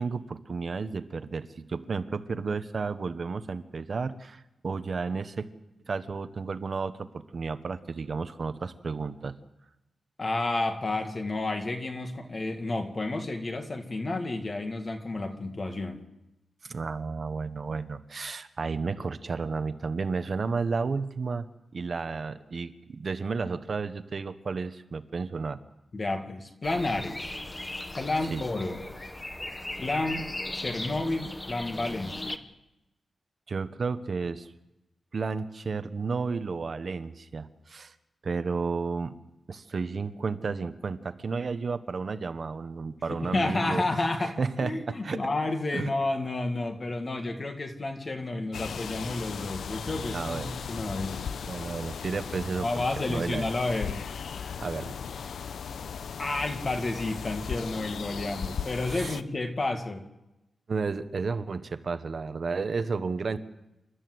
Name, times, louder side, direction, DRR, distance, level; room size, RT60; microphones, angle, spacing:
voice 1, 0.0-5.5 5.9-9.4 16.6-21.5 21.7-25.6 28.3-28.4 33.5-34.5 35.1-37.9 38.2-39.1 39.5-43.8 44.2-45.2 45.7-45.9 50.1-50.6 51.4-53.4 54.6-55.0 58.9-59.2 60.7-63.4, right 4 dB, 45° right, 11 dB, 1.1 m, -32 dB
voice 2, 10.2-16.0 25.9-27.3 28.0-28.8 29.8-30.3 30.5-32.4 43.1-51.2 52.6-54.0 56.2-60.0, left 2 dB, 30° left, 5 dB, 1.9 m, -31 dB
sound 1, 26.6-32.4, left 1 dB, 15° left, 1.0 m, -38 dB
sound 2, 48.5-59.2, left 7 dB, 85° left, 0.7 m, -37 dB
28.5 x 13.0 x 7.9 m, 0.94 s
wide cardioid pair, 165°, 0 cm